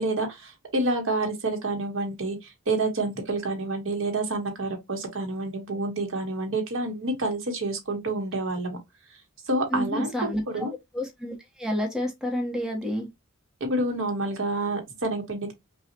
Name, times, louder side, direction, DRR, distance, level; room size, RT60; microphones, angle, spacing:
voice 1, 0.0-8.8 9.5-10.7 13.6-15.5, right 2 dB, 65° right, 1.2 m, -28 dB
voice 2, 9.7-10.7 10.9-13.1, equal, 5° right, 1.1 m, -29 dB
5.5 x 2.4 x 2.9 m
head